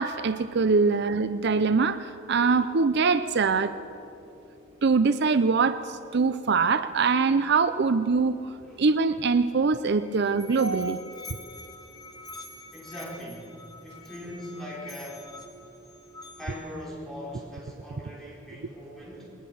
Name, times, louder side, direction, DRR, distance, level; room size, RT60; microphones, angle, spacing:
voice 1, 0.0-3.7 4.8-8.4 8.8-11.0, right 4 dB, 55° right, 12 dB, 0.5 m, -23 dB
Musical instrument, 9.8-16.8, left 3 dB, 20° left, 1.6 m, -47 dB
voice 2, 12.7-13.5 13.8-15.3 16.4-19.3, left 1 dB, ahead, -5 dB, 4.7 m, -41 dB
20.5 x 20.0 x 7.1 m, 2.9 s
head